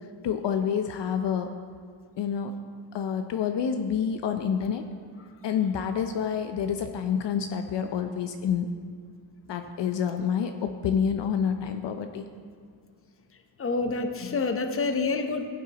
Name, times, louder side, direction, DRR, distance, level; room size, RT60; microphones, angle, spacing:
voice 1, 0.2-1.5 2.2-2.6 2.9-4.8 5.4-8.7 9.5-12.2 14.2-14.4, left 7 dB, 60° left, 7 dB, 0.7 m, -28 dB
voice 2, 13.6-15.5, left 3 dB, 25° left, 6 dB, 0.8 m, -27 dB
16.0 x 8.1 x 2.9 m, 2.1 s
cardioid pair, 100°, 48 cm